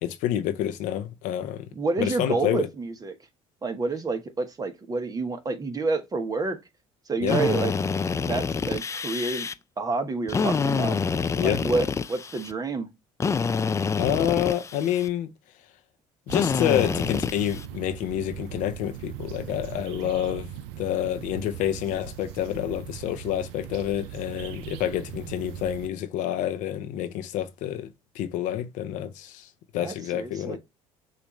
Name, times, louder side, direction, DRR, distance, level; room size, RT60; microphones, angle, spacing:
voice 1, 0.0-1.7 2.0-2.7 7.2-7.4 11.4-11.6 14.0-15.3 16.3-27.9 28.1-29.5 29.7-30.6, left 11 dB, 70° left, 0.6 m, -28 dB
voice 2, 1.7-3.1 3.6-6.6 7.1-7.7 8.2-9.5 9.8-11.0 11.4-12.9 29.8-30.6, right 3 dB, 25° right, 1.1 m, -28 dB
Drill, 7.3-9.5 10.3-12.5 13.2-15.1 16.3-17.7, left 5 dB, 20° left, 0.4 m, -27 dB
sound 1, 16.3-25.9, right 12 dB, 90° right, 0.4 m, -40 dB
6.3 x 2.6 x 3.1 m
supercardioid pair, 80°, 14 cm